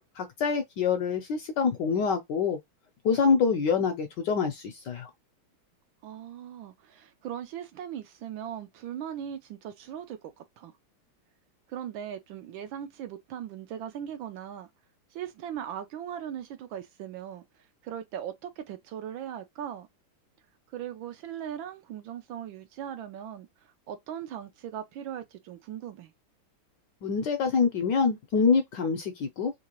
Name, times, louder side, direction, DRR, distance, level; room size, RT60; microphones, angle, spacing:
voice 1, 0.2-2.6 3.0-5.1 27.0-29.5, left 5 dB, 70° left, 1.0 m, -26 dB
voice 2, 6.0-10.7 11.7-14.7 15.1-17.4 17.8-19.9 20.7-23.5 23.9-26.1, right 10 dB, 75° right, 1.2 m, -39 dB
3.6 x 2.8 x 2.9 m
omnidirectional pair, 2.4 m